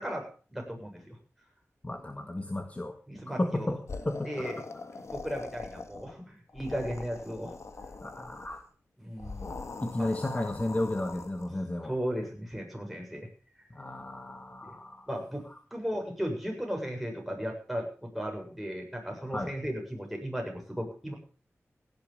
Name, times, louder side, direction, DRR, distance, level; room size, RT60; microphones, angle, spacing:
voice 1, 0.5-1.1 2.1-2.2 3.1-3.7 4.2-4.6 5.1-7.5 9.0-9.5 10.0-10.1 11.8-13.3 14.7-14.8 15.1-15.4 15.7-21.1, equal, ahead, 1 dB, 7.2 m, -36 dB
voice 2, 1.8-3.0 3.4-4.6 8.0-8.6 9.8-11.9 13.7-15.1 19.3-19.5, left 1 dB, 25° left, 6 dB, 1.7 m, -33 dB
sound 1, 3.9-6.2 6.5-8.6 9.2-11.5, left 3 dB, 70° left, 1.7 m, -42 dB
16.5 x 11.0 x 5.3 m, 0.41 s
wide cardioid pair, 65°, 5 cm